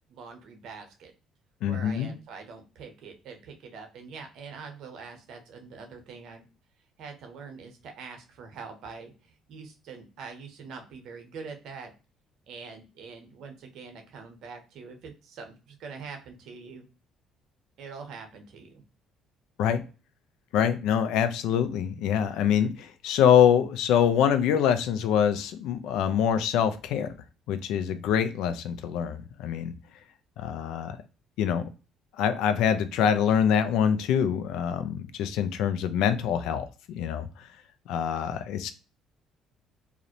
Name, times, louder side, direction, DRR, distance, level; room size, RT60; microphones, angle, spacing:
voice 1, 0.1-1.1 1.6-6.5 7.0-11.9 12.5-16.8 17.8-18.8, right 5 dB, 70° right, 4 dB, 0.6 m, -44 dB
voice 2, 1.6-2.2 19.6-19.8 20.5-27.1 27.5-29.7 30.4-31.0 31.4-31.6 32.2-36.7 37.0-37.5 37.9-38.7, left 8 dB, 75° left, 11 dB, 0.3 m, -25 dB
2.4 x 2.0 x 2.7 m, 0.32 s
supercardioid pair, 65°, 0 cm